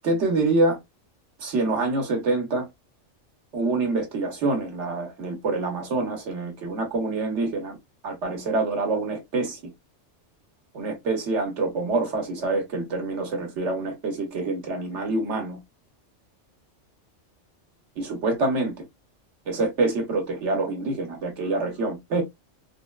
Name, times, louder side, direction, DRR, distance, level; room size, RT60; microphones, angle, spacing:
voice 1, 0.0-0.8 1.4-2.7 3.5-7.8 8.0-9.6 10.7-15.6 18.0-18.8 19.5-22.2, right 3 dB, 70° right, 1.3 m, -26 dB
3.5 x 2.2 x 2.2 m
omnidirectional pair, 1.2 m